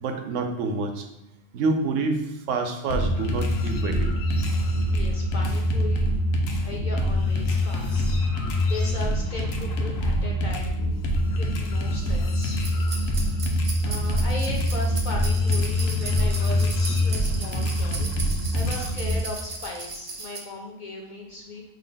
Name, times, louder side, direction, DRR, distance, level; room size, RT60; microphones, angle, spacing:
voice 1, 0.0-1.0 1.5-2.2 2.5-4.1, right 3 dB, 75° right, 5 dB, 0.9 m, -27 dB
sound 1, 2.9-19.2, left 1 dB, 85° left, 1.0 m, -24 dB
voice 2, 4.9-6.1 6.6-8.0 8.7-10.8 11.4-12.6 13.8-18.1 18.5-21.6, left 3 dB, 55° left, -1 dB, 0.6 m, -37 dB
sound 2, 12.4-20.4, right 3 dB, 40° right, 0.5 m, -37 dB
5.4 x 2.0 x 3.8 m, 0.87 s
omnidirectional pair, 1.3 m